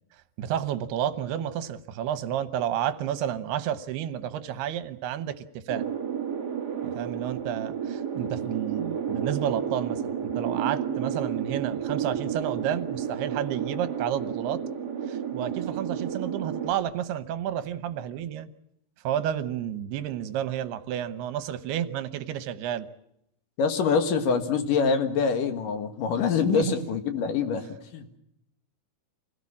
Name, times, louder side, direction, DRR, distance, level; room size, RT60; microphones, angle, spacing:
voice 1, 0.4-5.9 6.8-14.6 15.1-18.5 19.0-22.9 26.6-26.7, right 10 dB, 80° right, 12 dB, 2.9 m, -31 dB
sound 1, 5.7-16.7, right 8 dB, 45° right, 1.3 m, -31 dB
voice 2, 23.6-27.7 27.9-28.2, left 5 dB, 60° left, 7 dB, 3.1 m, -25 dB
27.0 x 17.0 x 8.5 m, 0.79 s
omnidirectional pair, 4.7 m